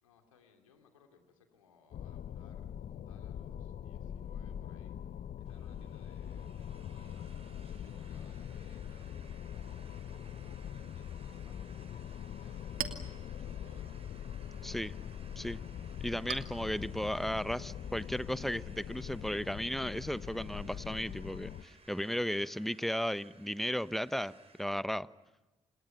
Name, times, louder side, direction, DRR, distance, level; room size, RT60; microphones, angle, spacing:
voice 1, 0.0-7.3 7.6-9.1 9.5-12.8 13.1-13.9, left 6 dB, 90° left, 4 dB, 2.8 m, -64 dB
sound 1, 1.9-21.6, left 9 dB, 55° left, 1.0 m, -43 dB
sound 2, 5.4-24.8, right 3 dB, 40° right, 7.7 m, -61 dB
Chink clink, 12.2-19.4, right 9 dB, 60° right, 2.6 m, -48 dB
voice 2, 14.6-14.9 15.4-15.6 16.0-25.1, equal, ahead, 15 dB, 1.1 m, -35 dB
30.0 x 28.0 x 5.8 m, 1.1 s
hypercardioid pair, 40°, 16 cm